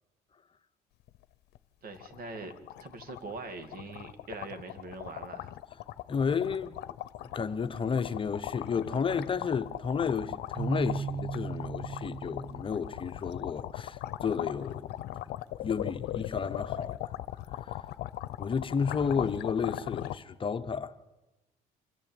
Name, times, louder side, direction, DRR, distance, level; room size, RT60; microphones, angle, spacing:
sound 1, 1.1-1.2 1.6-1.7 1.9-20.2, left 14 dB, 75° left, 0.7 m, -39 dB
voice 1, 1.8-2.5 2.8-5.5, right 3 dB, 60° right, 2.4 m, -42 dB
voice 2, 6.1-6.7 7.2-14.9 15.6-17.1 17.6-17.8 18.4-21.0, left 6 dB, 30° left, 0.9 m, -32 dB
Keyboard (musical), 10.5-13.4, right 6 dB, 30° right, 0.9 m, -38 dB
25.5 x 14.0 x 8.9 m
cardioid pair, 110°, 17 cm